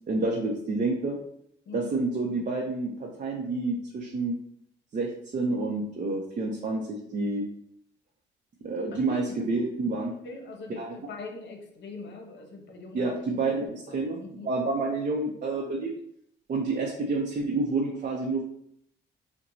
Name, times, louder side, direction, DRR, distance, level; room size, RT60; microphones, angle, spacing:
voice 1, 0.1-1.2 1.7-4.4 4.9-7.5 8.6-10.1 10.8-11.0 12.9-15.9 16.5-18.4, right 3 dB, 40° right, -1 dB, 0.7 m, -29 dB
voice 2, 8.9-9.5 10.2-13.3 13.6-14.5, left 3 dB, 65° left, 3 dB, 0.9 m, -42 dB
5.5 x 2.2 x 2.6 m, 0.70 s
cardioid pair, 90°, 20 cm